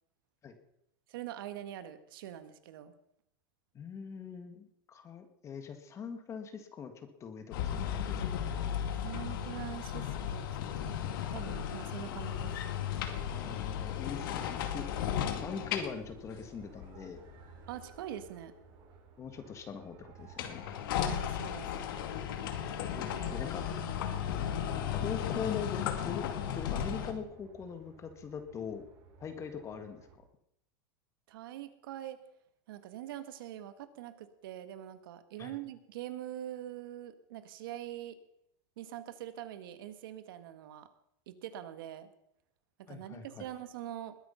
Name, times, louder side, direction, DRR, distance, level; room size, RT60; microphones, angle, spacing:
voice 1, 1.1-2.9 9.0-12.6 17.7-18.5 21.0-21.7 31.3-32.2 32.7-38.2 38.8-40.9 41.3-42.1 42.8-44.2, right 12 dB, 75° right, 10 dB, 1.7 m, -44 dB
voice 2, 3.7-8.4 13.3-14.9 15.4-17.2 19.2-20.6 22.8-23.6 24.9-26.3 26.5-28.9 29.2-30.2 35.4-35.5 42.9-43.5, left 6 dB, 25° left, 7 dB, 1.8 m, -42 dB
sound 1, 7.5-17.8 20.2-27.1, left 9 dB, 75° left, 2.3 m, -35 dB
sound 2, 15.6-30.2, right 6 dB, 40° right, 4.9 m, -57 dB
21.0 x 9.3 x 5.7 m, 0.75 s
supercardioid pair, 140°, 12 cm